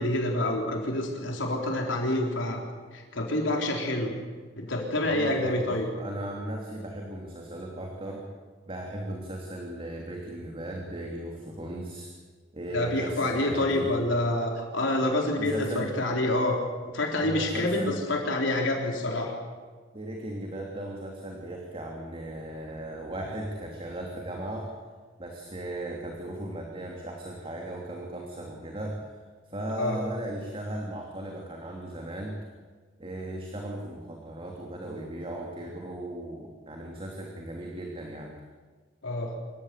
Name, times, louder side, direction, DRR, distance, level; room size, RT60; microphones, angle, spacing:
voice 1, 0.0-2.6 2.9-4.1 4.6-5.9 12.7-16.6 16.9-19.3 29.8-30.0 39.0-39.3, left 1 dB, 85° left, 0 dB, 4.0 m, -27 dB
voice 2, 5.0-8.3 8.7-12.1 12.5-13.9 15.4-15.9 17.2-17.9 19.9-24.7 25.2-29.1 29.5-32.4 33.0-38.3, right 1 dB, 30° right, 0 dB, 2.9 m, -37 dB
26.0 x 15.5 x 8.3 m, 1.5 s
head